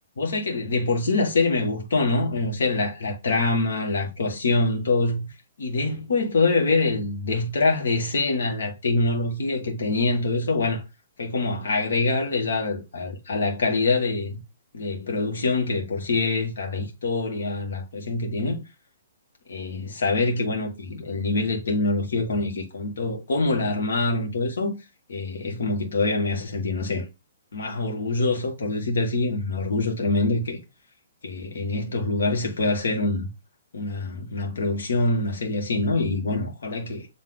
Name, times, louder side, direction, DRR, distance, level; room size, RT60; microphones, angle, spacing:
voice 1, 0.2-5.3 5.6-10.8 11.2-14.4 14.7-18.6 19.5-24.8 25.1-27.1 27.5-30.6 31.2-33.3 33.7-37.1, left 3 dB, 80° left, 2.2 m, -25 dB
8.2 x 3.5 x 4.0 m
hypercardioid pair, 170°, 0 cm